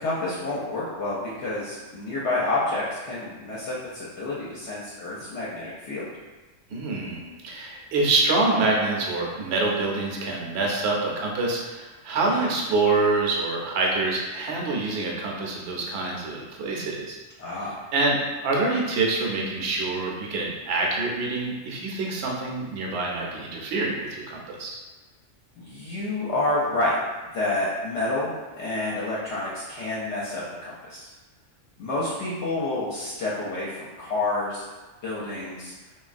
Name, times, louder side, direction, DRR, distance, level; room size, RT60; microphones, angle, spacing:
voice 1, 0.0-6.1 12.3-12.5 17.4-17.8 25.6-27.0 27.3-31.1 31.8-34.6 35.0-35.7, left 2 dB, 70° left, -7 dB, 0.8 m, -29 dB
voice 2, 6.7-17.2 17.9-24.8, right 3 dB, 65° right, -1 dB, 0.8 m, -26 dB
3.0 x 2.3 x 2.5 m, 1.2 s
omnidirectional pair, 1.3 m